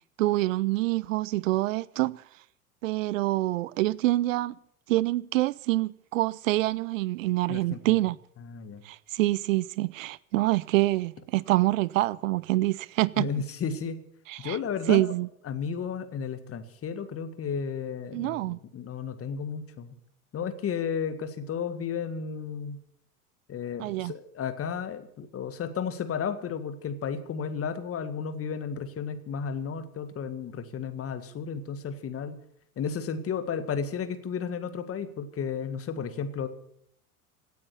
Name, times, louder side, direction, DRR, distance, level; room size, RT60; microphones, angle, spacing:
voice 1, 0.2-2.2 2.8-4.5 4.9-8.2 8.8-13.3 14.3-14.6 14.9-15.3 18.1-18.6 23.8-24.1, right 18 dB, 65° right, 0.5 m, -26 dB
voice 2, 7.5-8.0 8.4-8.8 13.2-14.0 14.4-15.1 15.4-20.0 20.3-22.8 23.5-32.4 32.8-36.5, left 6 dB, 30° left, 1.9 m, -33 dB
17.5 x 9.2 x 8.4 m
figure-of-eight pair, 80°, 44 cm